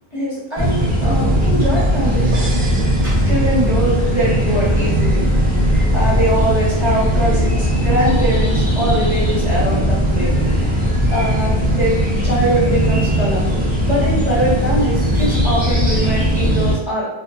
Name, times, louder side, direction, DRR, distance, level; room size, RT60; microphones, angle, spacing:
voice 1, 0.1-2.5 3.0-10.5 11.1-17.1, equal, 30° left, -8 dB, 0.8 m, -22 dB
sound 1, 0.6-16.7, equal, 10° right, 0.4 m, -18 dB
sound 2, 2.3-4.1, right 2 dB, 75° right, 0.8 m, -34 dB
2.6 x 2.2 x 2.3 m, 0.98 s
omnidirectional pair, 1.1 m